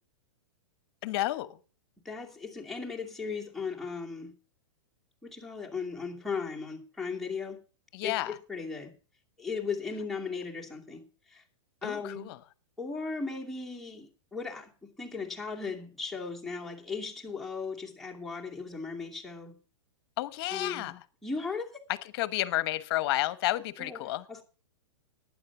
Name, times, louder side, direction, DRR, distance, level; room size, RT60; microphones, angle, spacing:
voice 1, 1.0-1.5 7.9-8.3 11.8-12.4 20.2-20.9 22.1-24.2, left 16 dB, 50° left, 1.1 m, -31 dB
voice 2, 2.0-4.3 5.2-7.6 8.0-8.9 9.4-11.4 11.8-12.3 12.8-19.6 20.5-20.9 21.2-21.7 23.8-24.4, left 4 dB, ahead, 2.6 m, -37 dB
11.5 x 9.6 x 5.9 m
hypercardioid pair, 130°, 16 cm